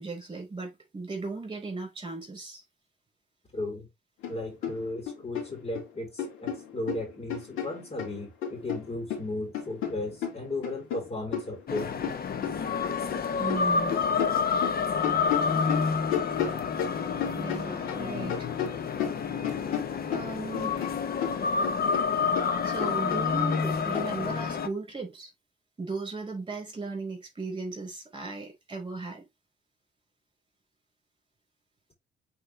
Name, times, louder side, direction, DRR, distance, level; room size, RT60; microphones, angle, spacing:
voice 1, 0.0-2.6 13.4-14.0 17.3-18.5 20.1-21.2 21.8-21.9 22.6-25.3 25.8-29.2, right 3 dB, 25° right, 5.0 m, -36 dB
voice 2, 3.5-3.9 4.3-11.9, left 2 dB, 30° left, 3.7 m, -35 dB
sound 1, 4.2-4.4 4.6-5.9 6.2-8.1 8.4-13.2 13.5-18.0 18.3-21.0 21.2-24.1, left 8 dB, 85° left, 2.7 m, -34 dB
sound 2, 11.7-24.7, left 5 dB, 50° left, 1.2 m, -29 dB
7.9 x 4.3 x 3.4 m
cardioid pair, 90°, 20 cm